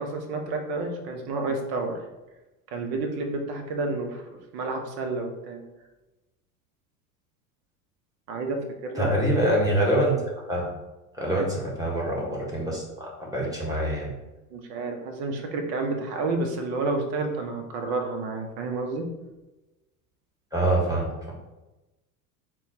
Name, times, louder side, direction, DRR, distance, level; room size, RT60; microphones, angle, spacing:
voice 1, 0.0-2.0 2.7-4.2 4.5-5.6 8.3-9.1 11.3-11.5 14.5-19.1, right 3 dB, 55° right, 4 dB, 0.9 m, -30 dB
voice 2, 8.9-10.1 10.5-10.7 11.1-14.1 20.5-21.3, right 1 dB, 10° right, -3 dB, 1.4 m, -25 dB
3.9 x 2.3 x 4.0 m, 1.1 s
hypercardioid pair, 85°, 46 cm